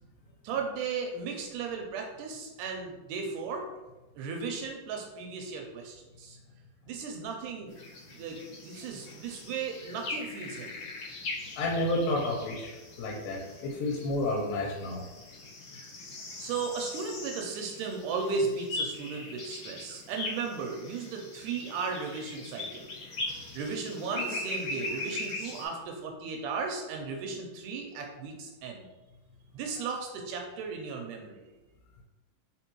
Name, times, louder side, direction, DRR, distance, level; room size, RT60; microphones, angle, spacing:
voice 1, 0.4-3.7 4.2-6.4 6.9-7.7 8.1-10.8 16.4-22.9 23.5-28.9 29.5-31.4, right 4 dB, 80° right, 2 dB, 2.0 m, -35 dB
sound 1, 7.7-25.7, left 2 dB, 70° left, 1.3 m, -40 dB
voice 2, 11.6-12.7 13.0-15.0, left 1 dB, 90° left, -2 dB, 2.4 m, -30 dB
4.4 x 4.1 x 2.9 m, 1.1 s
omnidirectional pair, 3.9 m